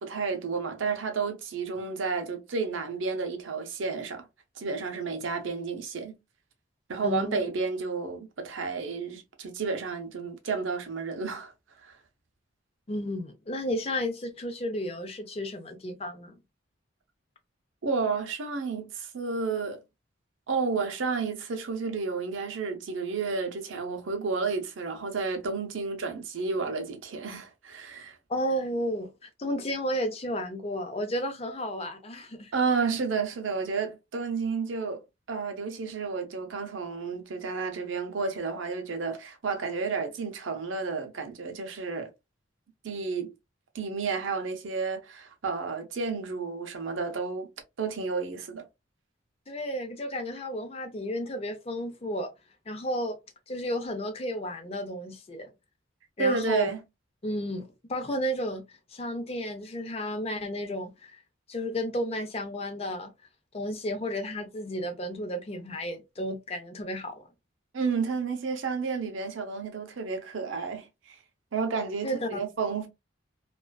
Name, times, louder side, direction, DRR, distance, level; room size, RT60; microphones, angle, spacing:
voice 1, 0.0-4.3 4.6-6.2 6.9-11.5 11.8-11.9 17.8-19.8 20.5-28.2 32.5-35.0 35.3-42.1 42.8-43.3 43.7-47.5 47.8-48.6 56.2-56.8 67.7-71.2 71.5-72.9, right 4 dB, 80° right, 0.6 m, -31 dB
voice 2, 7.0-7.4 12.9-16.4 28.3-32.5 49.5-52.3 52.7-53.2 53.5-55.5 56.2-56.7 57.2-61.1 61.5-63.1 63.5-67.3 72.0-72.4, equal, 30° left, 0.5 m, -32 dB
2.4 x 2.3 x 2.2 m
head